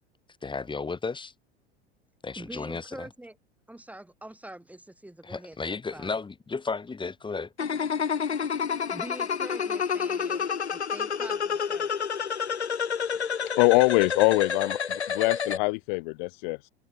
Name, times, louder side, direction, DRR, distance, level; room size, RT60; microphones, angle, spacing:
voice 1, 0.4-1.3 2.2-3.1 5.2-7.5, left 4 dB, 15° left, 3.2 m, -33 dB
voice 2, 2.4-3.4 3.7-6.1 8.9-11.9, right 1 dB, 5° right, 4.2 m, -44 dB
sound 1, 7.6-15.6, left 6 dB, 75° left, 2.6 m, -29 dB
voice 3, 13.6-14.8 15.1-16.7, left 31 dB, 45° left, 0.6 m, -23 dB
figure-of-eight pair, 80°, 33 cm